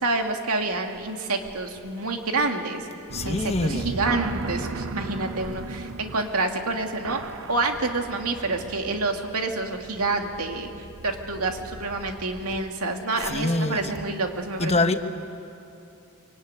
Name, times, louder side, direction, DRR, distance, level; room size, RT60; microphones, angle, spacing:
voice 1, 0.0-2.9 3.2-7.2 7.5-10.7 11.0-15.0, right 3 dB, 80° right, 3 dB, 2.5 m, -28 dB
voice 2, 3.1-4.0 13.2-13.9 14.6-15.0, left 2 dB, 30° left, 7 dB, 1.2 m, -25 dB
sound 1, 3.1-12.6, right 3 dB, 60° right, 0.8 m, -36 dB
24.5 x 23.5 x 9.7 m, 2.7 s
head